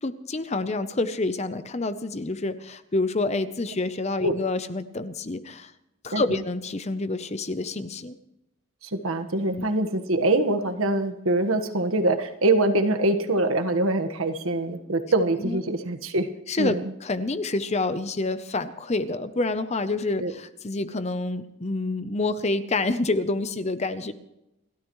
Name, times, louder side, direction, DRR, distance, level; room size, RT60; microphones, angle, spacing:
voice 1, 0.0-5.7 6.0-8.2 9.5-9.7 15.4-15.6 16.5-24.1, left 2 dB, 30° left, 11 dB, 0.7 m, -28 dB
voice 2, 8.8-16.3 16.6-16.8 20.2-20.3, right 2 dB, 85° right, 9 dB, 1.5 m, -24 dB
29.5 x 13.0 x 3.1 m, 0.90 s
head